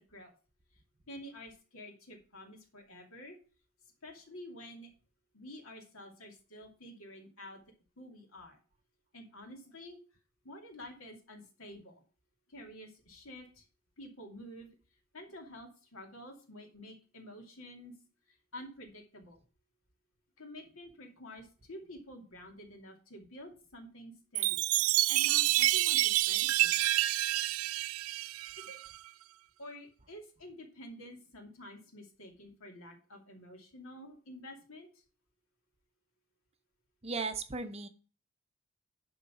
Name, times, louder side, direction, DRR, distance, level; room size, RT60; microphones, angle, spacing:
voice 1, 1.1-3.4 4.0-4.9 5.3-7.6 8.0-8.5 9.1-10.0 10.4-11.9 12.5-13.5 14.0-14.7 15.1-17.9 18.5-19.3 20.4-21.4 21.7-24.6 25.1-26.0 26.3-26.9 28.7-28.8 29.6-34.9, left 1 dB, 65° left, 3 dB, 2.5 m, -49 dB
Chime, 24.4-29.0, right 16 dB, 70° right, 0.3 m, -28 dB
voice 2, 37.0-37.9, right 4 dB, 30° right, 8 dB, 0.7 m, -36 dB
11.0 x 4.0 x 6.0 m, 0.37 s
head